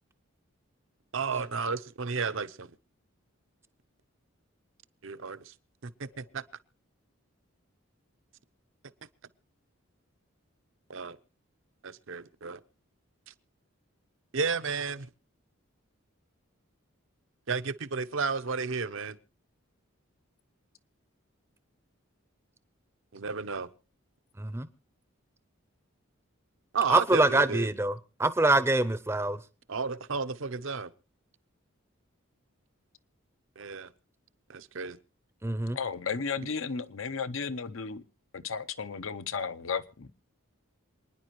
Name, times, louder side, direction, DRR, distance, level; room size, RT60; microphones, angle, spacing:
voice 1, 1.1-2.7 5.0-5.5 6.0-6.4 10.9-11.2 11.8-12.6 14.3-15.1 17.5-19.2 23.1-23.7 26.7-27.7 29.7-30.9 33.6-33.9 34.5-35.0, right 5 dB, 65° right, 0.7 m, -32 dB
voice 2, 26.9-27.9 28.2-29.4 35.4-35.8, right 2 dB, 10° right, 0.6 m, -25 dB
voice 3, 35.7-38.0 38.3-40.1, left 5 dB, 75° left, 0.8 m, -34 dB
27.0 x 10.0 x 3.0 m
head